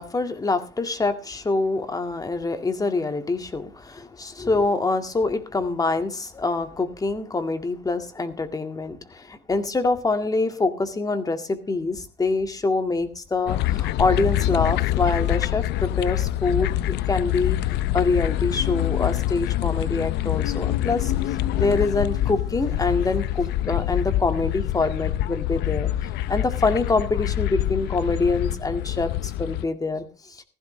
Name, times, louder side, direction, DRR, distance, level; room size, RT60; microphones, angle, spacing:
voice 1, 0.0-17.6 17.9-21.1 21.6-25.9 26.3-30.4, left 3 dB, 20° left, 8 dB, 2.0 m, -25 dB
sound 1, 13.5-29.7, left 14 dB, 85° left, 0.6 m, -25 dB
15.5 x 15.0 x 3.3 m, 0.31 s
cardioid pair, 110°, 17 cm